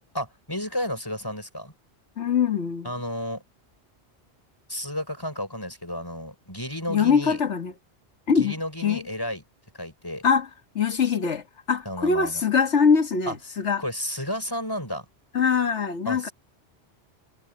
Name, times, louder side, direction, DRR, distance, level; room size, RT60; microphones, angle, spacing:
voice 1, 0.1-1.7 2.8-3.4 4.7-7.4 8.4-9.4 9.7-10.2 11.0-11.1 11.9-12.4 13.3-13.4 13.8-15.1 16.1-16.3, equal, 20° left, 5.3 m, -32 dB
voice 2, 2.2-2.9 6.9-7.7 8.3-8.6 8.8-9.0 10.2-10.5 10.8-13.8 15.3-16.3, left 6 dB, 85° left, 2.0 m, -23 dB
omnidirectional pair, 1.1 m